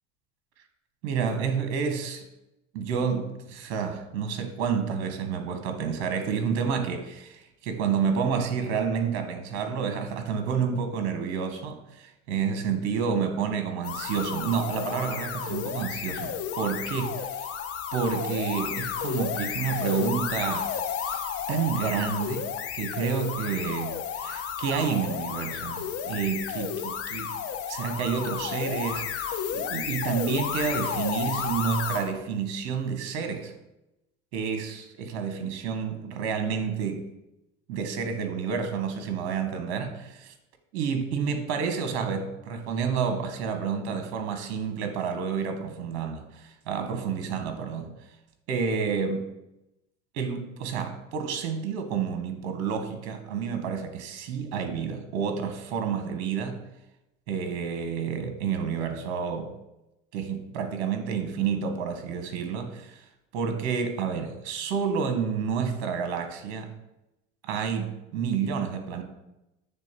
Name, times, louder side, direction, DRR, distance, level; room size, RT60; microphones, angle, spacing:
voice 1, 1.0-2.3 2.7-17.1 17.9-20.7 21.0-22.5 22.7-27.3 27.7-29.2 29.5-33.5 34.3-37.0 37.7-40.3 40.7-47.9 48.5-49.2 50.1-56.6 57.3-59.5 60.1-63.0 63.3-66.7 67.4-69.0, right 6 dB, 65° right, 7 dB, 1.3 m, -29 dB
sound 1, 13.8-32.1, left 8 dB, 45° left, 0.9 m, -32 dB
8.7 x 3.4 x 4.4 m, 0.92 s
supercardioid pair, 100°, 32 cm